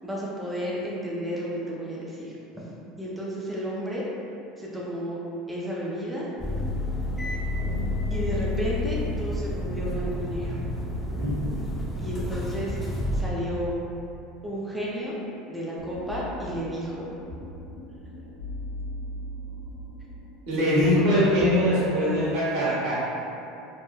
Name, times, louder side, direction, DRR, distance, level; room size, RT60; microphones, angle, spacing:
voice 1, 0.0-2.6 3.0-4.1 4.6-5.2 5.5-6.3 8.1-10.6 12.0-12.8 13.1-13.8 14.4-15.2 15.5-17.1 22.6-22.7, equal, 5° right, -7 dB, 0.4 m, -32 dB
sound 1, 6.4-13.2, left 1 dB, 20° left, 0.8 m, -29 dB
sound 2, 15.8-21.7, equal, 55° left, 0.8 m, -39 dB
voice 2, 20.5-23.0, equal, 75° right, -9 dB, 1.1 m, -22 dB
3.0 x 2.0 x 2.2 m, 2.8 s
supercardioid pair, 110°, 0 cm